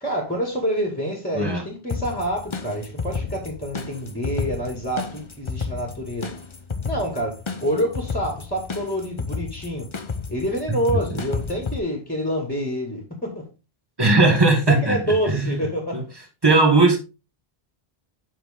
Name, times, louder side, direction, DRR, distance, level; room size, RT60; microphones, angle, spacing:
voice 1, 0.0-6.3 6.8-9.9 10.3-13.4 14.7-16.1, equal, 10° left, 2.0 m, -27 dB
sound 1, 1.9-11.8, left 4 dB, 35° left, 0.7 m, -32 dB
voice 2, 14.0-15.5 15.9-16.0 16.4-17.0, right 3 dB, 25° right, 1.7 m, -18 dB
7.4 x 5.7 x 3.6 m
omnidirectional pair, 1.0 m